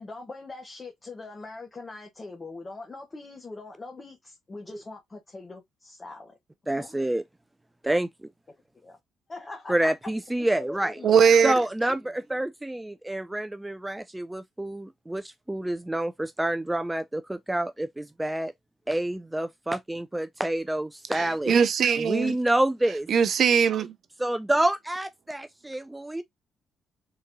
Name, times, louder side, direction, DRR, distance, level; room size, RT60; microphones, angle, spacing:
voice 1, 0.0-6.4 6.7-7.0 8.8-9.0 9.3-10.1 10.4-11.4, left 3 dB, 30° left, 1.1 m, -42 dB
voice 2, 6.7-7.2 7.8-8.3 9.7-11.0 11.4-18.5 18.9-21.6 22.0-23.1 24.2-26.2, right 1 dB, 10° right, 0.3 m, -28 dB
voice 3, 11.0-11.5 21.1-22.4 23.1-23.9, right 7 dB, 60° right, 0.5 m, -21 dB
3.9 x 2.7 x 2.5 m
cardioid pair, 90°, 0 cm